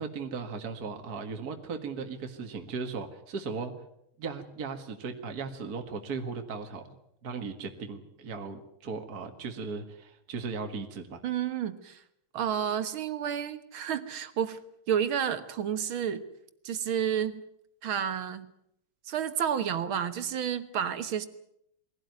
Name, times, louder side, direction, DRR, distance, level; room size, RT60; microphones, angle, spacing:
voice 1, 0.0-3.7 4.2-6.9 7.2-11.2, right 4 dB, 45° right, 5 dB, 2.2 m, -37 dB
voice 2, 11.2-12.0 12.3-14.6 14.9-16.2 16.6-17.4 17.8-18.5 19.1-21.3, right 8 dB, 70° right, 11 dB, 2.1 m, -30 dB
22.0 x 17.0 x 9.4 m, 0.76 s
omnidirectional pair, 2.4 m